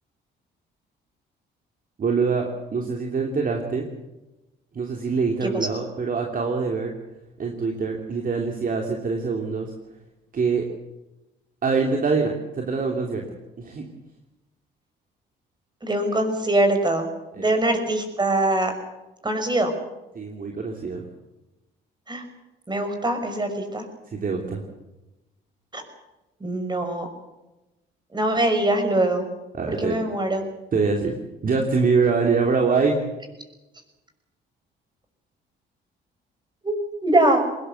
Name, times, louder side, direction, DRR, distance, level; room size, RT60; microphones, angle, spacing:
voice 1, 2.0-3.9 4.7-6.9 7.4-9.7 10.3-10.7 11.6-13.2 13.6-13.9 17.4-17.5 20.1-21.0 24.1-24.6 29.5-30.0 30.7-31.1 31.4-33.0, right 4 dB, 45° right, 2 dB, 3.2 m, -24 dB
voice 2, 15.8-17.1 17.4-18.7 19.2-19.7 22.1-22.2 22.7-23.9 25.7-25.8 26.4-27.1 28.1-29.2 29.7-30.4 36.6-36.7 37.0-37.4, right 1 dB, 20° right, 6 dB, 6.0 m, -22 dB
20.5 x 18.5 x 8.3 m, 1.0 s
cardioid pair, 80°, 20 cm